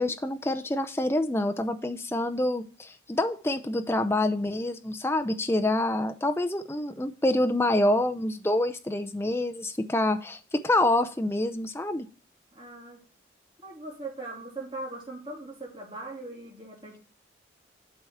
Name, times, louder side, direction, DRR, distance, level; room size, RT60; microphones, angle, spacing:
voice 1, 0.0-12.1, left 1 dB, 15° left, 7 dB, 0.6 m, -27 dB
voice 2, 12.5-13.0 13.6-17.0, right 2 dB, 30° right, -3 dB, 3.0 m, -40 dB
8.0 x 4.8 x 5.7 m, 0.38 s
head